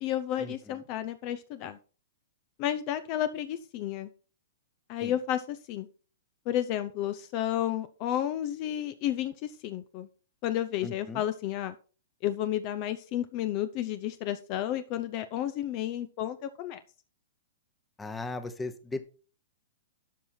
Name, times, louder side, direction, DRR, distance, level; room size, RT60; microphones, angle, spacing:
voice 1, 0.0-1.8 2.6-4.1 4.9-5.9 6.5-10.1 10.4-11.8 12.2-16.8, left 11 dB, 40° left, 12 dB, 0.7 m, -32 dB
voice 2, 10.8-11.2 18.0-19.0, left 3 dB, 10° left, 11 dB, 1.0 m, -37 dB
12.0 x 5.6 x 4.4 m, 0.36 s
hypercardioid pair, 145°, 0 cm